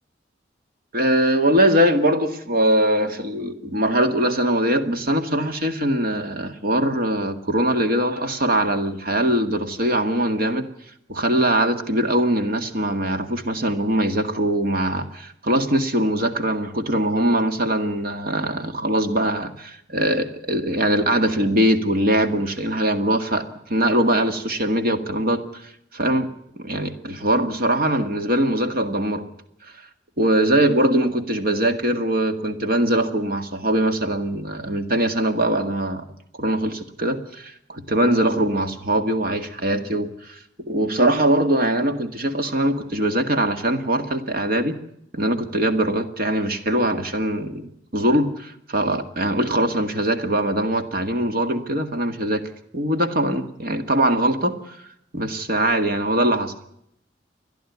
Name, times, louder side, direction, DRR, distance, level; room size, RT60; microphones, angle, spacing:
voice 1, 0.9-10.7 11.1-26.3 26.6-29.3 30.2-36.1 36.4-40.4 40.7-44.8 45.1-52.4 52.7-54.8 55.1-56.5, right 1 dB, 55° right, 7 dB, 2.0 m, -22 dB
30.0 x 11.5 x 9.5 m, 0.76 s
head